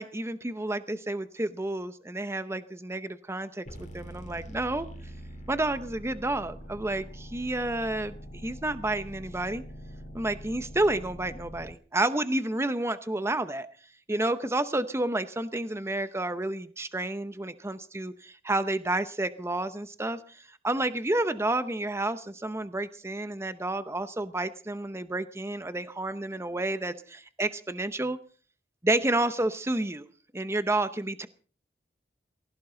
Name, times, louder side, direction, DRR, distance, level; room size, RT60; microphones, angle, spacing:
voice 1, 0.0-3.7 3.9-4.9 5.5-8.2 8.4-9.6 10.1-13.7 14.1-28.2 28.8-30.1 30.3-31.3, right 2 dB, 15° right, 11 dB, 0.8 m, -30 dB
sound 1, 3.6-11.7, equal, 45° left, 5.7 m, -44 dB
20.0 x 17.5 x 3.9 m, 0.42 s
head